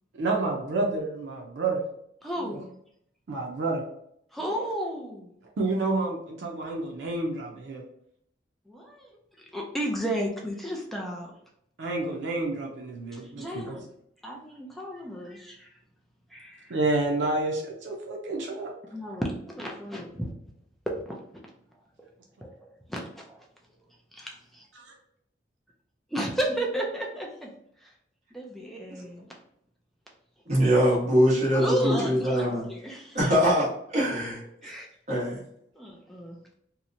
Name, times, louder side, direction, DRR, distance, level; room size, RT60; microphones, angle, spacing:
voice 1, 0.2-1.8 2.4-2.6 3.3-3.8 5.6-7.8 11.8-13.8 16.7-18.7, right 2 dB, 90° right, -1 dB, 0.5 m, -29 dB
voice 2, 2.2-2.7 4.3-5.3 8.7-9.1 9.5-11.3 13.1-13.8 14.2-15.7 16.3-16.7 18.9-20.3 20.9-21.2 22.4-22.5 22.9-23.4 24.1-24.3 26.1-27.5 27.8-27.9 28.3-29.3 31.5-33.2 34.6-34.9 35.8-36.4, equal, ahead, -2 dB, 0.3 m, -33 dB
voice 3, 30.5-32.6 33.1-33.7 33.9-34.4 35.1-35.4, equal, 40° right, -6 dB, 1.1 m, -22 dB
2.8 x 2.1 x 2.5 m, 0.71 s
head